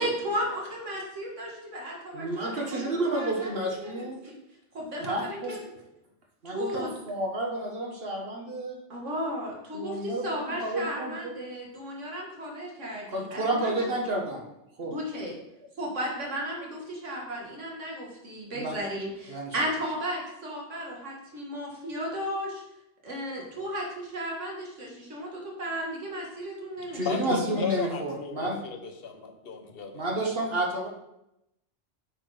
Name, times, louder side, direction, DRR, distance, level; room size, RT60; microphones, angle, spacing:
voice 1, 0.0-4.4 4.7-5.6 6.5-6.9 8.9-13.9 14.9-15.4 15.8-22.6 23.0-27.3, equal, 85° right, -1 dB, 2.2 m, -34 dB
voice 2, 2.1-4.2 5.0-5.5 6.4-8.8 9.7-11.3 13.1-14.4 14.8-14.9 18.5-18.7 19.3-19.6 26.9-28.6 29.9-30.9, right 1 dB, 55° right, 0 dB, 1.6 m, -30 dB
voice 3, 26.8-30.0, left 5 dB, 55° left, 5 dB, 1.1 m, -34 dB
8.5 x 4.4 x 4.9 m, 0.86 s
omnidirectional pair, 1.2 m